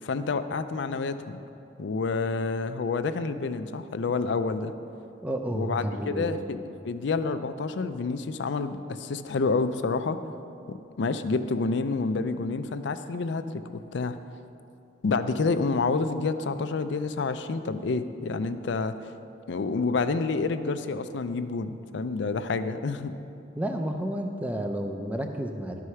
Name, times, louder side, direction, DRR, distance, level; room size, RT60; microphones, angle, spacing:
voice 1, 0.0-1.4 1.8-4.7 5.5-6.6 6.8-10.2 10.7-14.2 15.0-18.9 19.5-23.1, left 4 dB, 70° left, 11 dB, 0.4 m, -28 dB
voice 2, 5.2-6.3 23.6-25.8, right 1 dB, 10° right, 4 dB, 0.5 m, -31 dB
12.0 x 4.8 x 5.6 m, 2.7 s
head